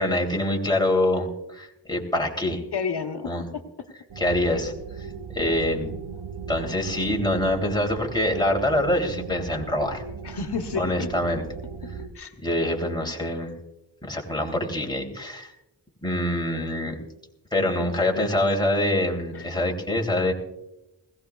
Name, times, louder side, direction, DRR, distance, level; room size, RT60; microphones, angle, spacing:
voice 1, 0.0-2.6 3.2-3.5 4.2-4.7 5.3-5.9 6.5-10.0 10.8-11.4 12.4-13.5 14.0-15.5 16.0-17.0 17.5-20.3, left 1 dB, 10° left, 0 dB, 3.0 m, -25 dB
voice 2, 2.7-3.9 5.4-5.9 10.2-11.1 12.1-12.3 17.5-17.7 18.1-18.5 19.3-19.5, left 5 dB, 70° left, 3 dB, 1.1 m, -32 dB
sound 1, 4.1-12.1, right 6 dB, 75° right, 1.2 m, -37 dB
20.5 x 17.0 x 2.4 m, 0.93 s
cardioid pair, 55°, 41 cm